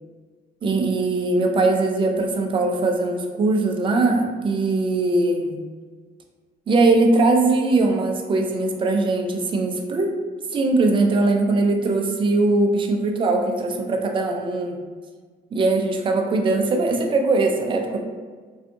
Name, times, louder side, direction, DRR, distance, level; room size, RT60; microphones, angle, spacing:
voice 1, 0.6-5.6 6.7-10.1 10.5-14.8 15.5-18.0, right 2 dB, 30° right, 3 dB, 0.4 m, -21 dB
2.6 x 2.3 x 2.5 m, 1.5 s
cardioid pair, 110°, 17 cm